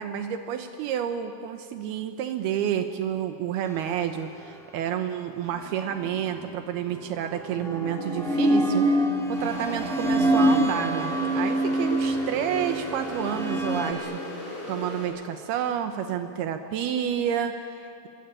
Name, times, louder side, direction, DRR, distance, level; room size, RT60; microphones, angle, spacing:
voice 1, 0.0-14.2 14.7-18.1, right 9 dB, 90° right, 6 dB, 2.2 m, -30 dB
sound 1, 5.5-6.5 7.4-13.9, right 1 dB, ahead, 0.8 m, -25 dB
sound 2, 9.3-15.0, left 1 dB, 50° left, 9.8 m, -37 dB
27.5 x 22.5 x 9.0 m, 2.6 s
omnidirectional pair, 6.0 m